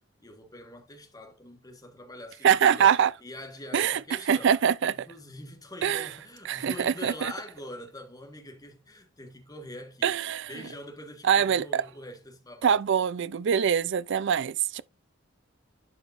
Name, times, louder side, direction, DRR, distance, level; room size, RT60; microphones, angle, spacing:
voice 1, 0.2-2.9 3.2-4.5 4.9-10.1 10.5-12.8, left 1 dB, 20° left, 1.6 m, -44 dB
voice 2, 2.4-3.1 3.7-4.0 4.3-5.1 5.8-6.1 6.5-7.3 10.0-10.5 11.2-11.8 12.6-14.8, right 8 dB, 60° right, 0.4 m, -24 dB
11.5 x 5.1 x 2.6 m
head